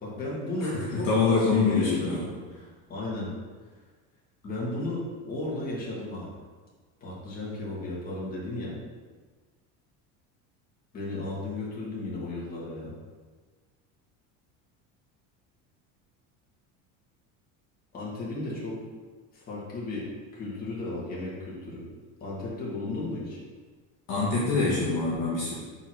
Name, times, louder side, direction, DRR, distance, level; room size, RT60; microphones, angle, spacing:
voice 1, 0.0-2.2 2.9-3.3 4.4-6.4 7.0-8.8 10.9-13.0 17.9-18.8 19.3-21.9 22.2-23.4, left 2 dB, 25° left, -6 dB, 1.8 m, -34 dB
voice 2, 0.9-2.2 24.1-25.5, left 4 dB, 40° left, -7 dB, 1.4 m, -24 dB
5.7 x 4.0 x 6.1 m, 1.4 s
cardioid pair, 175°, 37 cm